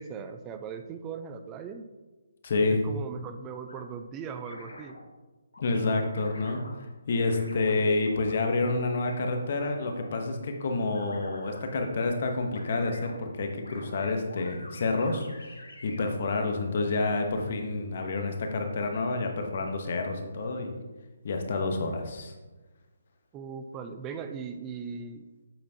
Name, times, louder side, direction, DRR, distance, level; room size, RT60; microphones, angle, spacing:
voice 1, 0.0-1.9 2.7-5.0 23.3-25.2, right 6 dB, 20° right, 7 dB, 0.3 m, -39 dB
voice 2, 2.4-2.8 5.6-6.6 7.1-15.3 15.8-20.7 21.2-22.3, left 3 dB, 50° left, 4 dB, 0.9 m, -28 dB
sound 1, 3.7-3.8 4.4-5.0 5.5-6.7 7.2-8.4 9.1-10.3 10.9-11.6 12.4-16.2, left 2 dB, 85° left, 1.3 m, -47 dB
7.7 x 4.4 x 2.8 m, 1.2 s
figure-of-eight pair, 145°, 0 cm